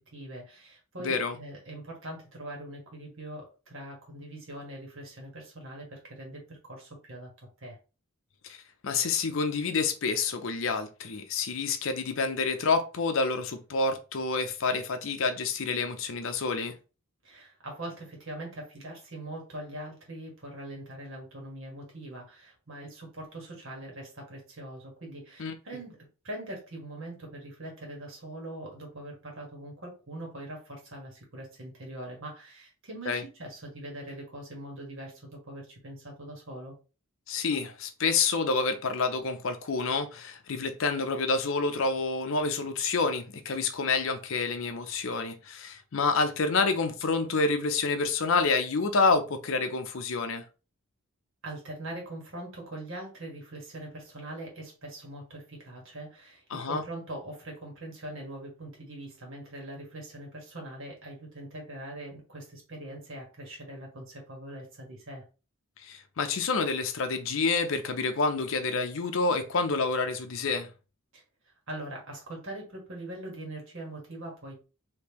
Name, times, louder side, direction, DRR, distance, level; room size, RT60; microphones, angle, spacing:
voice 1, 0.1-7.8 17.2-36.7 51.4-65.3 71.1-71.2 71.7-74.6, right 1 dB, 60° right, 1.6 m, -42 dB
voice 2, 1.0-1.4 8.5-8.6 8.8-16.7 25.4-25.5 33.1-33.2 37.3-50.4 56.5-56.8 65.8-70.7, left 4 dB, 60° left, 0.5 m, -28 dB
3.6 x 2.8 x 2.9 m
head